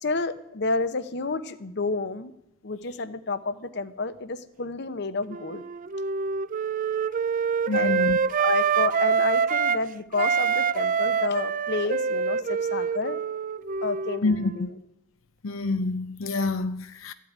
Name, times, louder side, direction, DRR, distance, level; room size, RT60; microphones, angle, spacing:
voice 1, 0.0-2.3 2.6-5.6 7.7-8.0 8.4-13.2 13.8-14.8, left 3 dB, 55° left, 0.9 m, -30 dB
Wind instrument woodwind instrument, 5.3-9.8 10.1-14.6, right 6 dB, 40° right, 0.4 m, -26 dB
voice 2, 7.7-8.2 14.2-14.7 15.4-17.1, left 3 dB, 90° left, 0.6 m, -27 dB
14.0 x 8.3 x 9.5 m
head